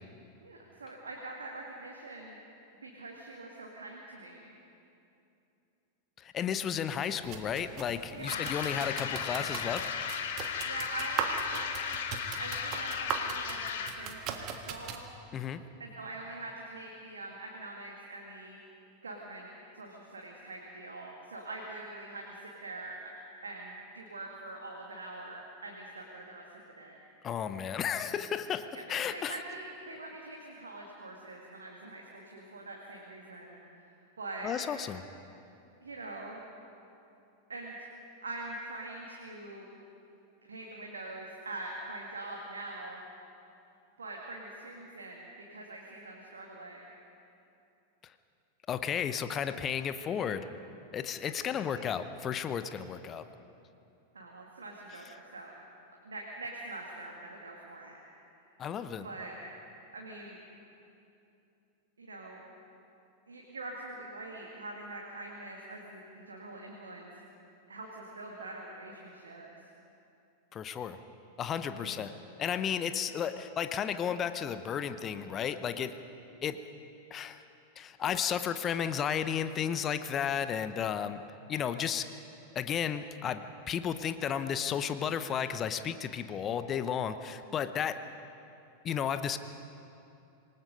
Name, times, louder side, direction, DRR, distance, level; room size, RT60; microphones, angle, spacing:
voice 1, 0.4-2.4 2.8-4.5 8.1-8.5 10.6-11.8 12.4-15.0 15.8-18.6 19.0-19.5 19.7-23.0 23.4-26.4 26.8-27.0 28.7-33.9 34.2-34.5 35.8-36.4 37.5-37.7 38.2-39.7 40.5-43.0 44.0-46.9 50.9-51.9 54.1-55.5 56.0-58.0 59.0-59.3 59.9-60.4 62.0-62.4 63.3-67.1 67.7-69.5 71.7-72.1 75.8-76.1, right 2 dB, 70° right, -1 dB, 2.3 m, -44 dB
voice 2, 6.2-9.9 15.3-15.6 27.2-29.4 34.4-35.0 48.0-48.1 48.7-50.5 50.9-53.3 58.6-59.1 70.5-71.0 71.4-72.1 72.4-76.0 76.4-76.6 77.1-77.4 77.8-81.2 81.5-82.1 82.5-88.0 88.8-89.4, left 8 dB, 25° left, 11 dB, 0.8 m, -33 dB
sound 1, 7.2-15.0, right 7 dB, 40° right, 1.6 m, -39 dB
sound 2, 8.3-14.1, left 7 dB, 55° left, 1.5 m, -35 dB
26.5 x 19.0 x 5.4 m, 2.7 s
figure-of-eight pair, 90°, 0 cm